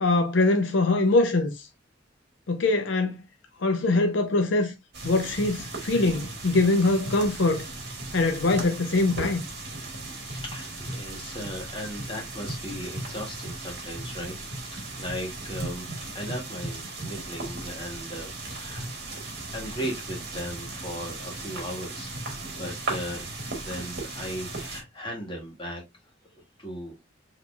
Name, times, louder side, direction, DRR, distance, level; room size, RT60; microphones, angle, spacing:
voice 1, 0.0-1.7 2.5-3.2 3.6-4.7 5.0-7.7 8.1-9.4, left 2 dB, 70° left, 0.6 m, -23 dB
sound 1, 4.9-24.8, right 2 dB, 60° right, 1.8 m, -36 dB
voice 2, 10.2-19.1 19.5-22.1 22.5-23.3 23.6-25.8 26.6-27.0, equal, 25° left, 1.6 m, -37 dB
4.2 x 3.0 x 2.3 m
head